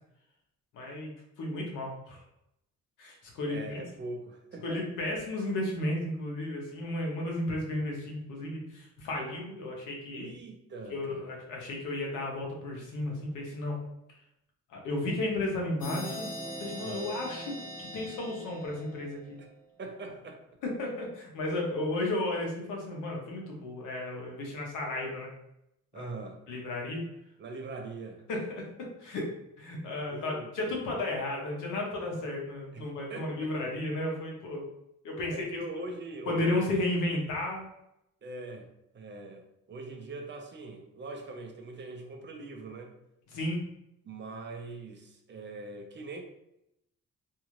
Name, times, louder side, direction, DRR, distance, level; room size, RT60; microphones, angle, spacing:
voice 1, 0.7-2.2 3.0-3.8 4.6-10.3 10.9-13.8 14.7-16.3 16.6-19.4 20.6-25.3 25.9-26.1 26.5-27.1 28.3-29.3 29.6-34.7 35.0-35.6 36.3-37.6 43.3-43.6, left 1 dB, 85° left, -1 dB, 0.9 m, -33 dB
voice 2, 3.5-4.8 10.1-11.3 16.8-17.2 19.4-19.5 19.8-20.4 25.9-26.4 27.4-28.2 30.1-30.5 30.9-31.0 32.7-33.5 35.3-37.1 38.2-38.7 38.9-39.4 39.7-42.9 44.0-46.2, right 3 dB, 40° right, 3 dB, 0.6 m, -42 dB
sound 1, 15.8-19.4, right 1 dB, 25° left, 0.9 m, -41 dB
2.7 x 2.4 x 3.0 m, 0.82 s
cardioid pair, 90°, 30 cm